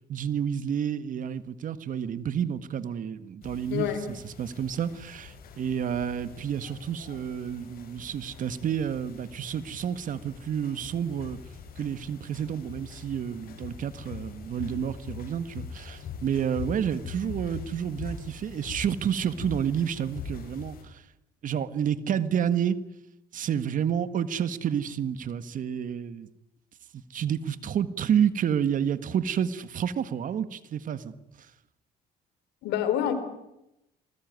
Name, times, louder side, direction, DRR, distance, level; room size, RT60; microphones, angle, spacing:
voice 1, 0.1-11.4 11.8-21.0 21.4-22.8 23.3-26.3 26.9-31.1, right 8 dB, 50° right, 1.7 m, -30 dB
sound 1, 3.4-20.8, left 5 dB, 60° left, 7.6 m, -43 dB
voice 2, 3.7-4.0 32.6-33.1, left 10 dB, 85° left, 4.4 m, -26 dB
28.0 x 20.5 x 9.5 m
cardioid pair, 110°, 17 cm